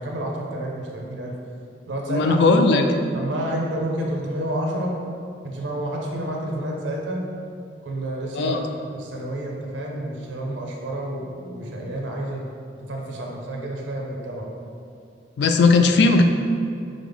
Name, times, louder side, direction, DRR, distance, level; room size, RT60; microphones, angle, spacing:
voice 1, 0.0-1.3 1.9-2.4 3.1-4.9 5.4-7.2 7.8-8.6 8.9-12.4 12.8-14.4, right 1 dB, 90° right, -1 dB, 0.6 m, -29 dB
voice 2, 2.1-2.9 8.4-8.6 15.4-16.2, left 3 dB, 65° left, 5 dB, 0.3 m, -17 dB
4.9 x 2.0 x 3.4 m, 2.5 s
head